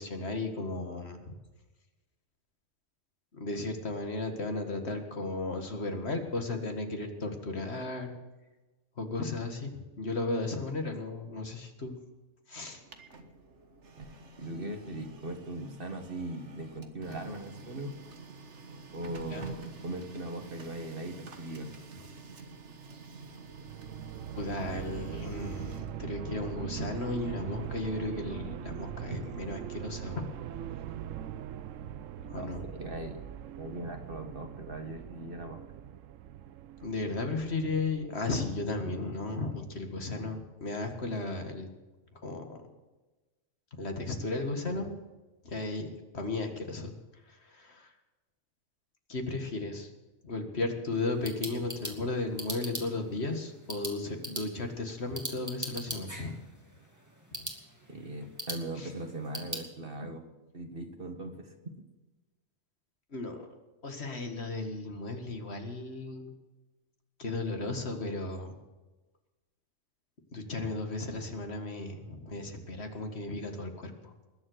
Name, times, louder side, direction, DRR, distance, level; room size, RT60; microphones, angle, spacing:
voice 1, 0.0-1.3 3.3-8.1 9.0-11.9 12.5-12.8 19.3-19.5 24.3-30.2 32.2-32.6 36.8-41.7 42.2-42.6 43.7-45.0 45.4-46.9 47.3-47.9 49.1-49.9 50.2-56.4 57.3-57.4 58.8-58.9 63.1-63.5 63.8-66.3 67.2-68.6 70.3-74.1, left 2 dB, 55° left, 5 dB, 2.1 m, -35 dB
Printer, 12.6-28.4, right 4 dB, 60° right, 1.7 m, -49 dB
voice 2, 14.4-18.0 18.9-21.7 32.4-33.2 33.6-35.6 57.9-60.2 60.5-61.6, right 1 dB, 45° right, 5 dB, 2.0 m, -39 dB
sound 1, 23.1-38.1, right 10 dB, 75° right, 1.0 m, -42 dB
sound 2, 50.9-59.7, right 1 dB, 15° right, 2.3 m, -42 dB
20.5 x 7.7 x 7.9 m, 1.2 s
omnidirectional pair, 1.4 m